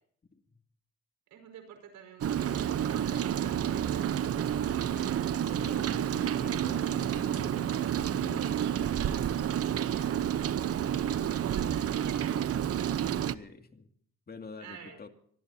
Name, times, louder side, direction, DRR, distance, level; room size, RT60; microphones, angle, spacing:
voice 1, 1.3-4.0 8.5-10.9 11.4-13.1 14.6-15.0, right 7 dB, 85° right, 6 dB, 5.3 m, -49 dB
Rain, 2.2-13.4, right 10 dB, 50° right, 0.8 m, -30 dB
voice 2, 4.9-8.7 13.3-13.9 14.3-15.1, left 4 dB, 30° left, 6 dB, 2.3 m, -48 dB
25.5 x 19.0 x 2.8 m, 0.63 s
cardioid pair, 90°, 30 cm